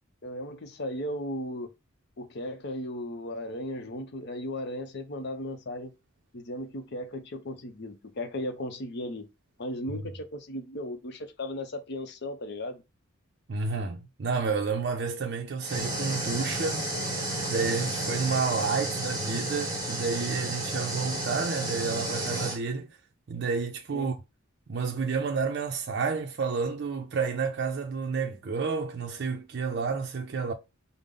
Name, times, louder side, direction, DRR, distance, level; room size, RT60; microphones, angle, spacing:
voice 1, 0.2-1.7 2.2-5.9 6.3-9.3 9.6-12.8 23.9-24.1, left 1 dB, 55° left, 0.7 m, -36 dB
voice 2, 13.5-16.9 17.5-22.9 23.3-24.2 24.7-30.5, right 5 dB, 55° right, 0.5 m, -30 dB
sound 1, 15.6-22.6, right 1 dB, 20° right, 1.1 m, -32 dB
5.2 x 2.0 x 3.6 m
head